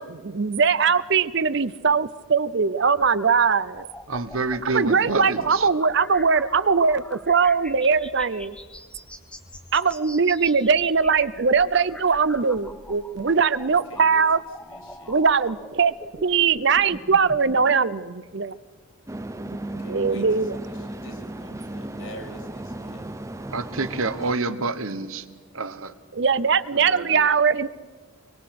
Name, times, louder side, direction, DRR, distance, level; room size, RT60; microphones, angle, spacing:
voice 1, 0.0-3.9 4.7-8.6 9.7-14.4 15.1-15.9 16.2-18.6 19.4-20.5 26.1-27.7, right 5 dB, 55° right, 16 dB, 0.6 m, -21 dB
sound 1, 2.8-17.8, equal, 5° left, 1.3 m, -43 dB
voice 2, 4.1-5.7 23.5-25.2 25.5-25.9 26.7-27.3, right 3 dB, 80° right, 11 dB, 1.2 m, -28 dB
voice 3, 4.7-5.3 13.7-14.2 14.6-15.1 19.6-23.2, left 1 dB, 70° left, 4 dB, 3.8 m, -45 dB
sound 2, 19.1-24.4, right 1 dB, 15° right, 0.6 m, -35 dB
24.0 x 23.0 x 6.0 m, 1.4 s
head